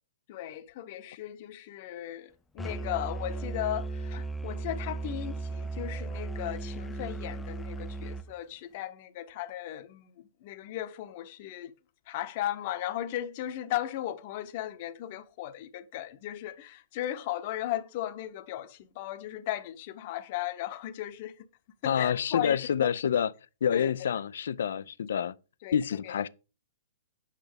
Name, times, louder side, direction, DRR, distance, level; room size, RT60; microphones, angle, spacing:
voice 1, 0.3-11.7 12.1-21.5 21.8-22.9 23.7-24.1 25.6-26.2, left 13 dB, 45° left, 0.9 m, -36 dB
Musical instrument, 2.6-8.2, right 3 dB, 10° left, 0.5 m, -36 dB
voice 2, 21.8-23.3 23.6-25.3 25.7-26.3, left 8 dB, 65° left, 0.4 m, -27 dB
8.3 x 5.6 x 5.1 m
figure-of-eight pair, 110°, 0 cm